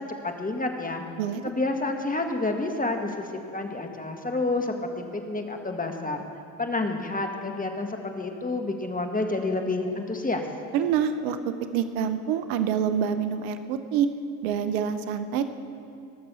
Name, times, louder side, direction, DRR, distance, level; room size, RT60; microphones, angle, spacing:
voice 1, 0.0-1.0 1.4-6.2 6.6-10.5, left 2 dB, 20° left, 4 dB, 1.7 m, -29 dB
voice 2, 10.7-14.1 14.4-15.4, right 8 dB, 75° right, 10 dB, 0.8 m, -26 dB
20.0 x 6.7 x 6.8 m, 2.6 s
hypercardioid pair, 55°, 44 cm